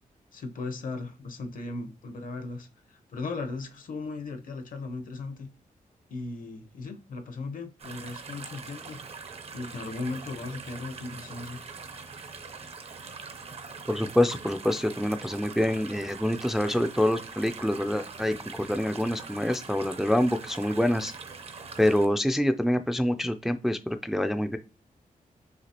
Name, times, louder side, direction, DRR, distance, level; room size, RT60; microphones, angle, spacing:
voice 1, 0.3-5.5 6.1-9.0 9.5-11.6, left 3 dB, 75° left, 6 dB, 0.8 m, -37 dB
sound 1, 7.8-22.1, right 5 dB, 45° right, 0.6 m, -43 dB
voice 2, 13.9-21.1 21.8-24.6, left 1 dB, 5° right, 8 dB, 0.3 m, -26 dB
5.9 x 2.8 x 2.8 m, 0.33 s
wide cardioid pair, 130°, 14 cm